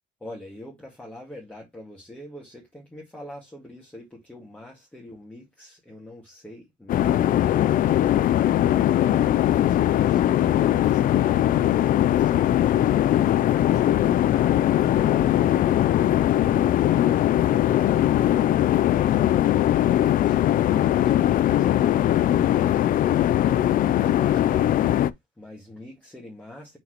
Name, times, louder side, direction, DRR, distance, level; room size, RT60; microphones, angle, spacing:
voice 1, 0.2-8.1 25.4-26.8, left 1 dB, 10° left, 2.0 m, -45 dB
sound 1, 6.9-25.1, left 12 dB, 55° left, 0.5 m, -20 dB
6.0 x 5.7 x 3.1 m
cardioid pair, 110°, 17 cm